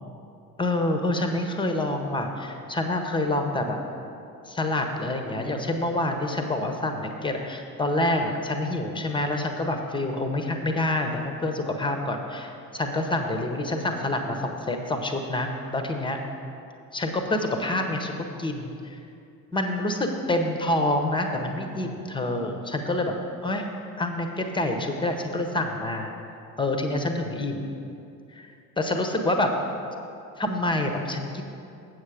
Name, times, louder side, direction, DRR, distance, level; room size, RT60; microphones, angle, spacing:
voice 1, 0.6-3.8 4.5-16.2 16.9-18.1 18.4-19.0 19.5-23.1 23.4-23.7 24.0-26.1 26.6-27.7 28.3-28.5 28.8-29.5 30.4-31.4, left 1 dB, 10° left, 4 dB, 0.9 m, -27 dB
7.9 x 7.5 x 4.9 m, 2.6 s
figure-of-eight pair, 60°, 49 cm